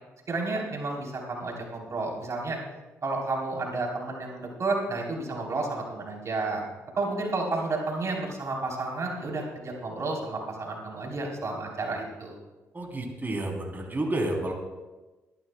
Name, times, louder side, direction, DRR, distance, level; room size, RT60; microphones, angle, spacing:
voice 1, 0.3-2.6 3.0-6.6 7.0-12.4, right 3 dB, 45° right, 0 dB, 3.6 m, -31 dB
voice 2, 12.7-14.5, right 1 dB, 30° right, 0 dB, 3.3 m, -30 dB
23.5 x 11.5 x 2.3 m, 1.2 s
hypercardioid pair, 40°, 7 cm